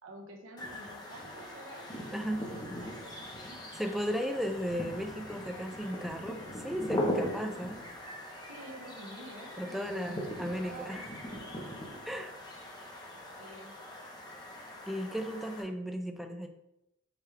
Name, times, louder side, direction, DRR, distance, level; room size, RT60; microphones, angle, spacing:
voice 1, 0.0-3.8 8.5-12.1 13.4-13.8, right 2 dB, 75° right, 1 dB, 0.9 m, -50 dB
sound 1, 0.6-15.6, left 1 dB, 20° left, 0.7 m, -40 dB
voice 2, 2.1-2.4 3.8-7.8 9.6-11.1 12.1-12.3 14.9-16.5, equal, ahead, 5 dB, 0.3 m, -35 dB
4.9 x 2.3 x 4.5 m, 0.86 s
head